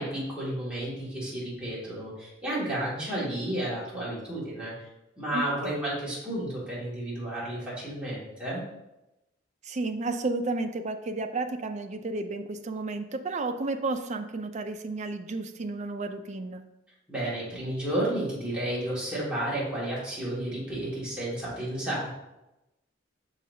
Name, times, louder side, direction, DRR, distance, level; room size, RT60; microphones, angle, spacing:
voice 1, 0.0-4.9 5.2-8.6 17.1-22.1, right 1 dB, 5° right, -9 dB, 2.2 m, -32 dB
voice 2, 5.3-5.8 9.6-16.6, right 3 dB, 35° right, 7 dB, 0.5 m, -32 dB
6.4 x 5.7 x 2.7 m, 0.93 s
head